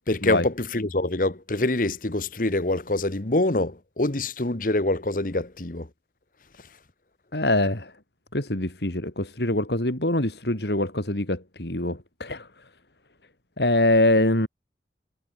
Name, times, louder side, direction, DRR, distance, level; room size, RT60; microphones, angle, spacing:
voice 1, 0.1-5.9, left 2 dB, 50° left, 1.4 m, -25 dB
voice 2, 7.3-7.9 8.3-12.5 13.6-14.5, left 1 dB, 70° left, 3.7 m, -24 dB
head